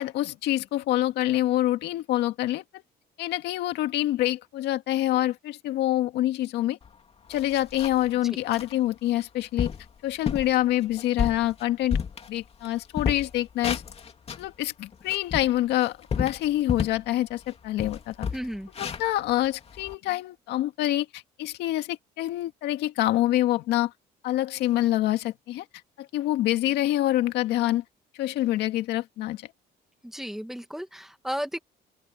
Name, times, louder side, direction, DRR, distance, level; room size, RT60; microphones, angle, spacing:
voice 1, 0.0-2.6 3.2-6.8 7.3-9.7 10.0-12.0 12.3-13.8 14.4-18.3 18.8-23.9 24.2-25.6 26.0-27.8 28.2-29.4, left 14 dB, 80° left, 2.1 m, -26 dB
sound 1, 6.8-6.9 7.3-8.1 8.5-8.7 9.2-9.3 9.6-9.9 10.3-10.5 11.0-12.7 12.9-14.5 14.9-17.1 17.4-17.5 17.8-19.9, left 6 dB, 35° left, 2.9 m, -31 dB
voice 2, 18.3-18.7 30.0-31.6, equal, ahead, 2.2 m, -34 dB
open air
cardioid pair, 110°, 17 cm